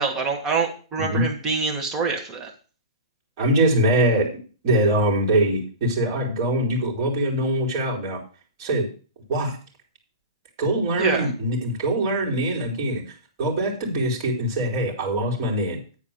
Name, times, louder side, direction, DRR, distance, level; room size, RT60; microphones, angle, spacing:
voice 1, 0.0-2.5 11.0-11.3, right 4 dB, 15° right, 2 dB, 1.4 m, -25 dB
voice 2, 3.4-4.3 4.6-8.2 8.6-8.9 9.3-9.6 10.6-13.0 13.4-15.8, right 1 dB, 30° right, -1 dB, 3.5 m, -23 dB
10.0 x 4.6 x 7.1 m, 0.37 s
hypercardioid pair, 170°, 3 cm